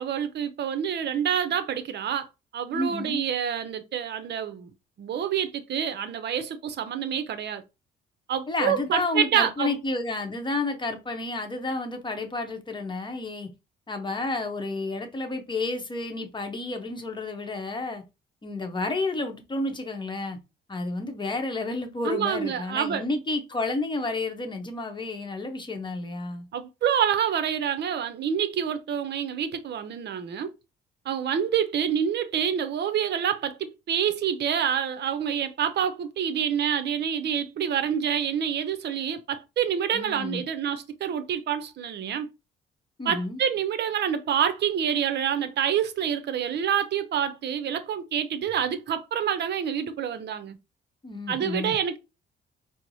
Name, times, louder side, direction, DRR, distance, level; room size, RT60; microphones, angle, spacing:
voice 1, 0.0-2.3 2.5-4.7 5.0-7.6 8.3-9.7 22.0-23.0 26.5-30.5 31.1-42.3 43.1-50.6 51.3-52.0, right 8 dB, 60° right, 0.6 m, -27 dB
voice 2, 2.7-3.2 8.5-13.5 13.9-18.0 18.4-20.4 20.7-26.5 39.9-40.4 43.0-43.4 51.0-51.8, left 2 dB, 25° left, 0.9 m, -31 dB
4.5 x 2.0 x 2.7 m
cardioid pair, 90°, 20 cm